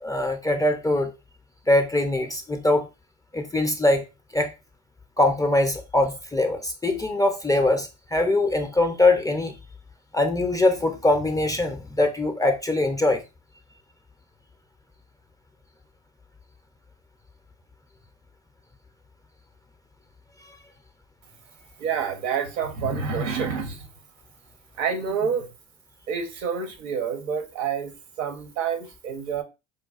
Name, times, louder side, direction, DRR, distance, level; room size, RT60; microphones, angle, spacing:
voice 1, 0.0-1.1 1.7-2.9 3.3-4.0 4.3-4.5 5.2-9.5 10.1-13.2, left 2 dB, 10° left, 0.3 m, -22 dB
voice 2, 21.8-23.9 24.7-25.5 26.1-27.9 28.2-29.4, right 6 dB, 80° right, 0.9 m, -28 dB
4.6 x 2.3 x 2.3 m
hypercardioid pair, 75°, 38 cm